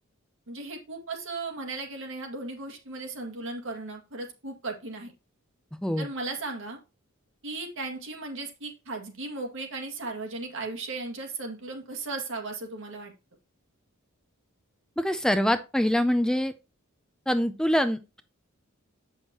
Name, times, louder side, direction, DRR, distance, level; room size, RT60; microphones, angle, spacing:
voice 1, 0.5-5.1 6.0-6.8 7.4-13.1, right 3 dB, 65° right, 2 dB, 2.0 m, -36 dB
voice 2, 15.0-16.5 17.3-18.2, equal, 5° left, 10 dB, 0.4 m, -24 dB
8.1 x 6.2 x 2.9 m, 0.29 s
head